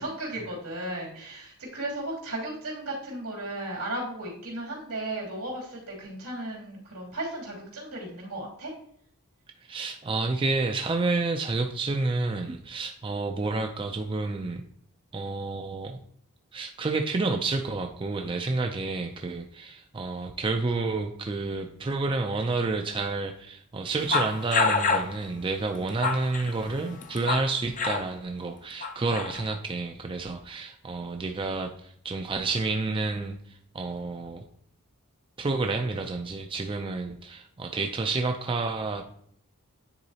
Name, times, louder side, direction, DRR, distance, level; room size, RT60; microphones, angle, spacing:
voice 1, 0.0-8.7, right 1 dB, 85° right, -3 dB, 2.7 m, -35 dB
voice 2, 9.7-14.6 15.1-16.0 16.5-34.4 35.4-39.0, right 3 dB, 20° right, 4 dB, 0.3 m, -30 dB
sound 1, 24.1-25.1 25.8-27.5 27.8-28.0 28.8-29.6, left 4 dB, 35° left, 0.5 m, -27 dB
9.6 x 3.9 x 2.8 m, 0.65 s
head